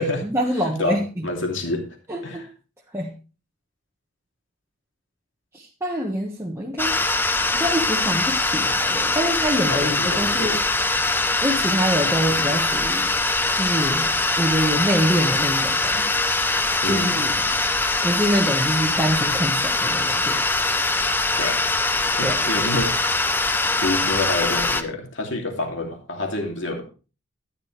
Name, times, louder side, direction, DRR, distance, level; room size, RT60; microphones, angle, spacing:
voice 1, 0.0-1.0 2.1-2.4 2.9-3.1 5.5-6.9 7.5-10.6 11.4-13.1 13.5-16.1 16.8-17.3 18.0-20.4 22.2-22.4, equal, 10° right, -2 dB, 1.3 m, -25 dB
voice 2, 0.5-1.9 2.2-2.5 9.7-10.6 16.8-17.3 21.4-21.6 22.1-23.0 23.8-26.8, left 2 dB, 60° left, 2 dB, 2.7 m, -27 dB
sound 1, 6.8-24.8, left 2 dB, 10° left, 0.6 m, -22 dB
13.0 x 10.5 x 3.3 m, 0.34 s
head